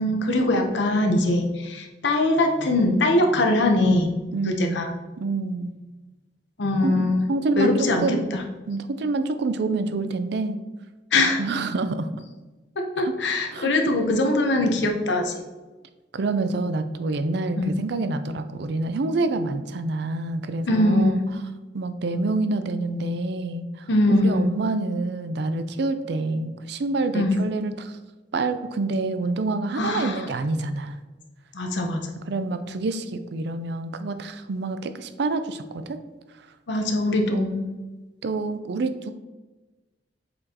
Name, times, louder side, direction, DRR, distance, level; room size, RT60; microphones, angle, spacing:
voice 1, 0.0-4.1 4.4-4.9 6.6-7.2 7.6-8.4 11.1-11.4 12.8-15.3 17.6-17.7 20.7-21.2 23.9-24.4 27.1-27.4 29.8-30.3 31.5-32.0 36.7-37.7, left 2 dB, 70° left, 3 dB, 0.8 m, -22 dB
voice 2, 4.3-5.7 6.8-8.3 8.7-10.6 11.4-12.2 13.0-13.1 13.5-13.7 16.1-21.4 21.7-23.7 24.1-27.9 28.3-31.0 32.3-36.0 37.3-37.5 38.2-39.1, right 3 dB, 65° right, 10 dB, 0.4 m, -27 dB
7.6 x 4.4 x 2.9 m, 1.2 s
head